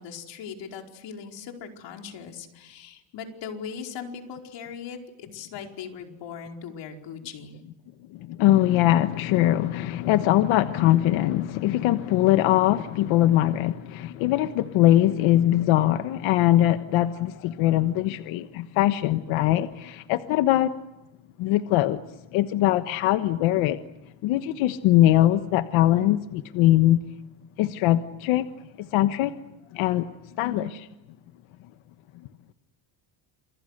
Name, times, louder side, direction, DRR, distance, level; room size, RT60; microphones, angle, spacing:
voice 1, 0.0-7.6 30.4-30.7, left 6 dB, 65° left, 3 dB, 4.9 m, -39 dB
voice 2, 8.1-20.7 21.4-22.0 22.3-23.8 24.2-27.0 27.6-29.3 29.7-30.1 30.4-30.8, left 14 dB, 80° left, 9 dB, 1.3 m, -22 dB
29.5 x 28.0 x 6.7 m, 0.96 s
cardioid pair, 135°, 47 cm